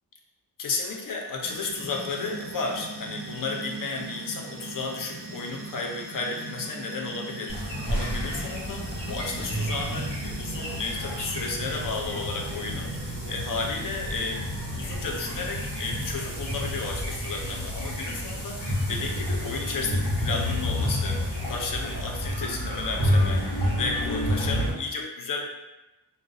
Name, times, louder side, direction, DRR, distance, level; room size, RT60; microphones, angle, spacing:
voice 1, 0.6-14.4 14.8-25.5, left 3 dB, 50° left, 1 dB, 0.5 m, -33 dB
sound 1, 1.4-16.2, right 2 dB, 35° right, 0.4 m, -41 dB
sound 2, 7.5-24.7, equal, 65° left, 1.0 m, -30 dB
2.5 x 2.0 x 2.4 m, 1.0 s
wide cardioid pair, 90°, 43 cm